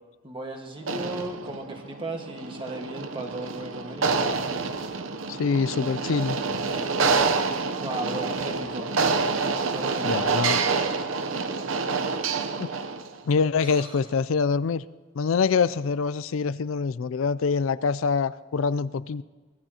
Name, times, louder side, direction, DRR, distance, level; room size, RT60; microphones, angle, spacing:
voice 1, 0.2-4.4 7.7-8.9 9.7-10.3 13.6-14.0, right 1 dB, 25° right, 2 dB, 1.6 m, -36 dB
sound 1, 0.8-13.2, right 4 dB, 85° right, 0.8 m, -27 dB
voice 2, 5.3-6.4 10.0-10.6 12.6-12.7 13.3-14.8 15.2-19.2, left 5 dB, 85° left, 17 dB, 0.4 m, -25 dB
23.5 x 18.0 x 2.9 m, 1.4 s
head